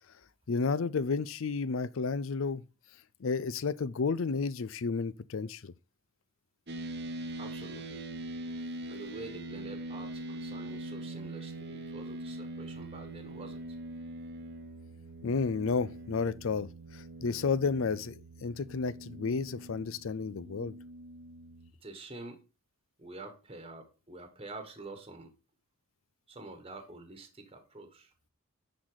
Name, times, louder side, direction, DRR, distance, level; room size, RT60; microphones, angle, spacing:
voice 1, 0.5-2.6 3.2-5.7 15.2-20.8, left 4 dB, 75° left, 0.5 m, -32 dB
sound 1, 6.7-21.7, right 1 dB, 50° right, 0.9 m, -42 dB
voice 2, 7.3-8.0 8.9-13.6 21.8-22.4 23.0-25.3 26.3-28.1, right 2 dB, 25° right, 1.3 m, -47 dB
10.0 x 4.1 x 4.8 m
head